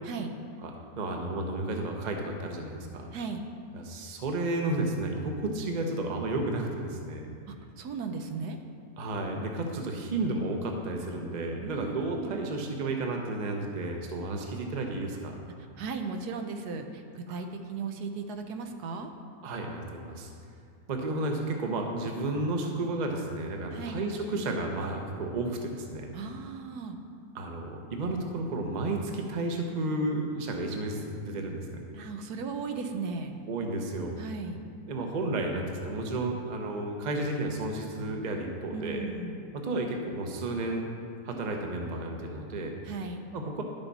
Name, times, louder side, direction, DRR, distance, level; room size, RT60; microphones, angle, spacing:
voice 1, 0.6-3.1 3.7-7.3 9.0-15.4 17.3-17.4 19.4-20.3 20.9-26.1 27.3-31.8 33.5-34.2 34.9-39.1 39.5-40.9 41.2-42.7 43.3-43.6, right 2 dB, 35° right, 2 dB, 0.8 m, -32 dB
voice 2, 3.1-3.4 7.5-8.6 11.6-12.5 15.8-19.1 23.7-24.0 26.1-27.0 31.9-33.4 34.2-34.6 38.7-39.4 42.8-43.2, right 4 dB, 80° right, 6 dB, 1.2 m, -36 dB
10.5 x 6.9 x 4.1 m, 2.3 s
omnidirectional pair, 1.7 m